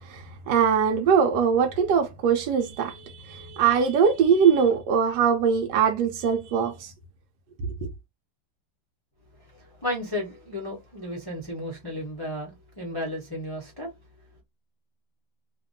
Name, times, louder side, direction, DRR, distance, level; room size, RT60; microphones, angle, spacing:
voice 1, 0.1-6.9, right 7 dB, 75° right, 1.1 m, -22 dB
voice 2, 9.5-13.9, left 1 dB, 30° left, 0.4 m, -33 dB
2.8 x 2.5 x 2.6 m
omnidirectional pair, 2.0 m